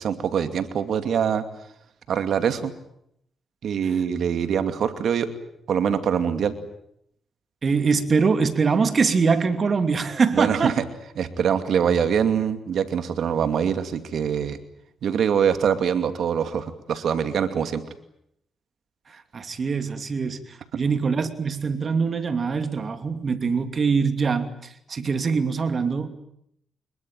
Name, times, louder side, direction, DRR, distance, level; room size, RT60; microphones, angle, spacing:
voice 1, 0.0-1.4 2.1-2.7 3.6-5.3 5.7-6.5 10.3-10.8 11.2-14.6 15.0-17.8 20.7-20.8, right 7 dB, 75° right, 9 dB, 2.6 m, -24 dB
voice 2, 7.6-10.7 19.3-26.1, right 5 dB, 50° right, 9 dB, 2.7 m, -23 dB
26.0 x 22.0 x 9.3 m, 0.75 s
cardioid pair, 80°, 0 cm